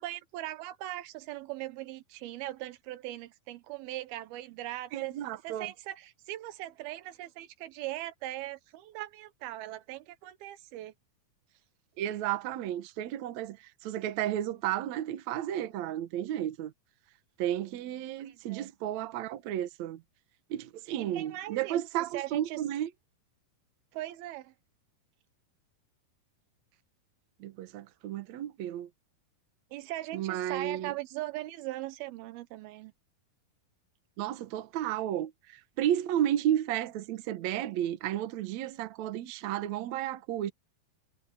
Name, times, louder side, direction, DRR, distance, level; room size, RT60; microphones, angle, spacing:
voice 1, 0.0-5.2 5.4-10.9 18.3-18.7 21.0-22.6 23.9-24.5 29.7-32.9, right 15 dB, 85° right, 2.8 m, -40 dB
voice 2, 4.9-5.7 12.0-16.7 17.4-20.0 20.5-22.9 27.4-28.9 30.1-30.9 34.2-40.5, right 11 dB, 65° right, 2.0 m, -33 dB
omnidirectional pair, 4.3 m